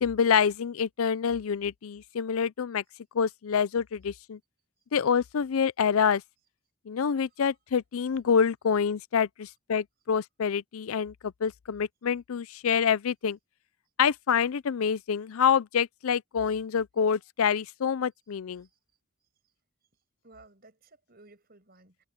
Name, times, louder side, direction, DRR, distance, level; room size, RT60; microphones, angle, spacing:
voice 1, 0.0-2.8 3.1-4.4 4.9-6.2 6.9-13.4 14.0-18.7, left 7 dB, 85° left, 0.5 m, -27 dB
voice 2, 20.2-22.0, right 2 dB, 45° right, 5.8 m, -56 dB
head